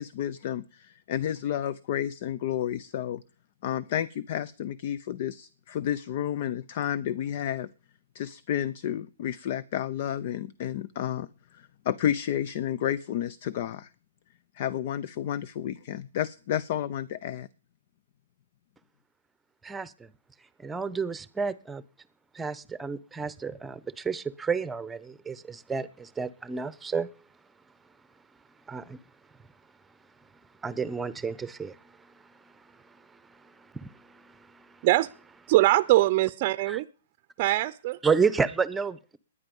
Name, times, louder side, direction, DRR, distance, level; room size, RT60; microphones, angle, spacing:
voice 1, 0.0-3.2 3.6-7.7 8.1-13.9 14.5-17.5, left 10 dB, 55° left, 0.6 m, -31 dB
voice 2, 19.6-20.1 20.6-21.8 22.3-27.1 28.7-29.0 30.6-34.9 36.7-36.8 38.0-39.2, right 5 dB, 10° right, 0.9 m, -31 dB
voice 3, 35.5-36.9 37.4-38.0, right 17 dB, 45° right, 0.6 m, -22 dB
20.0 x 9.9 x 5.4 m
hypercardioid pair, 125°, 0 cm